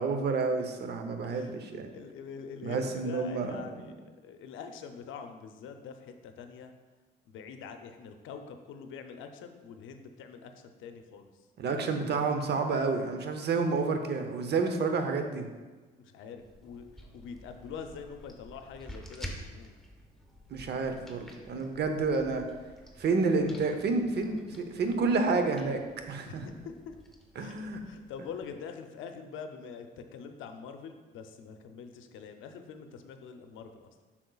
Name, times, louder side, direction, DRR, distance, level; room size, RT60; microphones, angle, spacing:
voice 1, 0.0-1.9 2.6-3.6 11.6-15.5 20.5-22.4 23.0-25.8 26.1-26.5 27.4-27.8, right 4 dB, 60° right, 6 dB, 0.8 m, -29 dB
voice 2, 1.3-1.6 1.9-6.7 7.3-10.5 10.8-11.3 16.0-16.9 17.1-19.7 26.2-27.0 27.4-33.9, left 6 dB, 85° left, 6 dB, 0.6 m, -45 dB
sound 1, 16.4-28.5, equal, ahead, 0.9 m, -50 dB
7.7 x 6.0 x 2.4 m, 1.3 s
cardioid pair, 90°, 20 cm